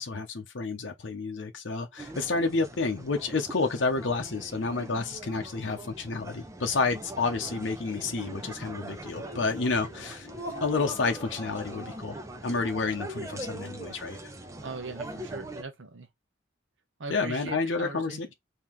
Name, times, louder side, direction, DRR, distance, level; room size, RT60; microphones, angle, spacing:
voice 1, 0.0-10.3 10.6-14.2 17.1-18.3, left 3 dB, 60° left, 0.7 m, -30 dB
sound 1, 2.0-15.6, right 1 dB, 15° right, 0.5 m, -42 dB
Laughter, 8.9-12.6, left 2 dB, 10° left, 1.3 m, -43 dB
voice 2, 14.3-16.1 17.0-18.3, right 3 dB, 65° right, 0.7 m, -40 dB
3.7 x 2.8 x 3.0 m
head